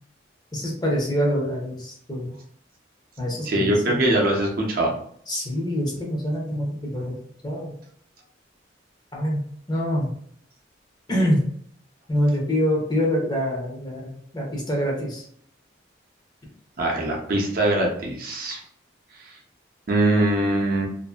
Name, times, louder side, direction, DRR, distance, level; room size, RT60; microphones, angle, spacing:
voice 1, 0.5-2.3 3.2-4.0 5.3-7.1 7.4-7.7 9.1-9.4 9.7-10.1 11.1-11.4 12.1-15.2, equal, 20° left, -2 dB, 0.7 m, -25 dB
voice 2, 3.4-4.9 16.8-18.6 19.2-19.3 19.9-20.9, right 1 dB, 50° right, -1 dB, 0.6 m, -22 dB
2.6 x 2.5 x 2.3 m, 0.63 s
head